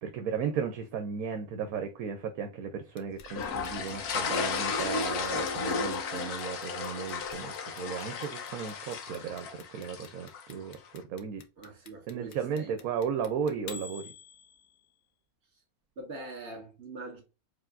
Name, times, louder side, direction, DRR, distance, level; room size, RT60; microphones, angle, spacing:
voice 1, 0.0-11.4 12.1-14.0, right 7 dB, 75° right, 1.1 m, -35 dB
Clock, 3.0-14.9, left 7 dB, 70° left, 1.1 m, -49 dB
sound 1, 3.2-10.5, left 5 dB, 85° left, 1.4 m, -34 dB
voice 2, 11.6-12.7 16.0-17.2, right 2 dB, 50° right, 2.1 m, -43 dB
4.8 x 3.2 x 2.5 m
omnidirectional pair, 1.6 m